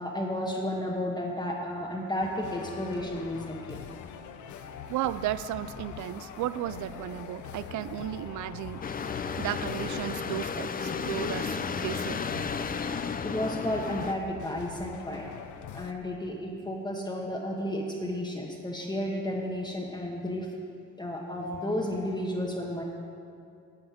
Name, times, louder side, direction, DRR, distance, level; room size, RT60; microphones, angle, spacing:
voice 1, 0.0-3.8 4.6-4.7 13.2-15.3 15.7-20.5 21.0-22.8, left 1 dB, 15° left, -2 dB, 1.2 m, -32 dB
sound 1, 2.2-15.9, left 7 dB, 75° left, 0.8 m, -43 dB
voice 2, 4.9-8.8 9.4-12.2, right 13 dB, 75° right, 16 dB, 0.5 m, -34 dB
sound 2, 8.8-14.1, left 5 dB, 30° left, 0.5 m, -33 dB
11.0 x 5.7 x 8.7 m, 2.5 s
cardioid pair, 90°, 30 cm